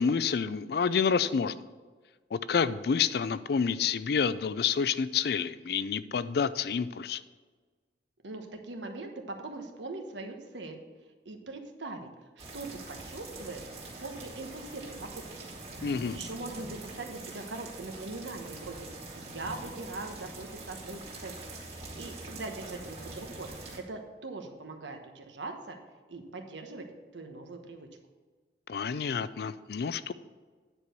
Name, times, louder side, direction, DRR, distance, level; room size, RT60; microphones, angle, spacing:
voice 1, 0.0-1.5 2.3-7.2 15.8-16.2 28.7-30.1, left 6 dB, 60° left, 15 dB, 0.4 m, -28 dB
voice 2, 8.2-10.8 11.2-12.1 12.4-13.7 14.0-15.5 15.7-18.9 19.1-21.4 21.7-25.8 26.1-26.9 27.1-27.9, right 3 dB, 85° right, 4 dB, 1.2 m, -41 dB
sound 1, 12.4-23.8, right 2 dB, 35° right, 2.1 m, -44 dB
9.8 x 4.6 x 6.7 m, 1.4 s
head